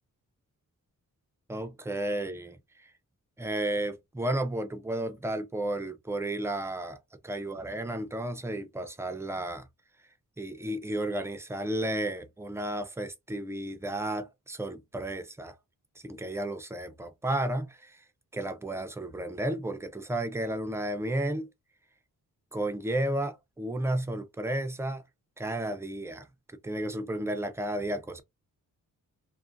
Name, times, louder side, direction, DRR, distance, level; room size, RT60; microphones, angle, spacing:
voice 1, 1.5-2.6 3.4-7.0 7.2-9.7 10.4-15.5 16.0-18.0 18.3-21.5 22.5-25.0 25.4-26.3 26.6-28.2, right 1 dB, 10° right, 0.3 m, -32 dB
2.5 x 2.4 x 2.5 m
wide cardioid pair, 140°, 34 cm